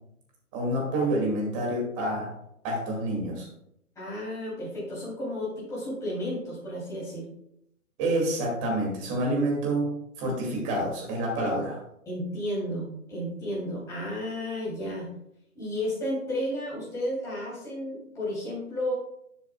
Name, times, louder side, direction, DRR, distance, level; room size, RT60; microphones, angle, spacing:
voice 1, 0.5-2.3 2.6-3.5 8.0-11.8, right 1 dB, 20° right, -1 dB, 2.5 m, -28 dB
voice 2, 3.9-7.3 12.0-15.1 15.5-18.9, left 1 dB, 5° left, -7 dB, 3.4 m, -32 dB
12.0 x 7.2 x 2.4 m, 0.76 s
hypercardioid pair, 155°, 45 cm